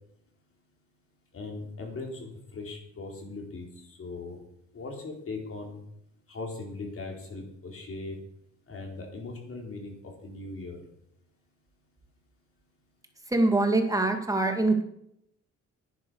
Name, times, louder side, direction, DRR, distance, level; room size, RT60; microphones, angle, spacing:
voice 1, 1.3-4.4 4.7-5.8 6.3-8.2 8.7-10.8, left 3 dB, 45° left, 1 dB, 4.3 m, -39 dB
voice 2, 13.3-14.8, right 2 dB, 10° right, 5 dB, 2.4 m, -24 dB
10.5 x 9.8 x 6.4 m, 0.75 s
cardioid pair, 90°, 30 cm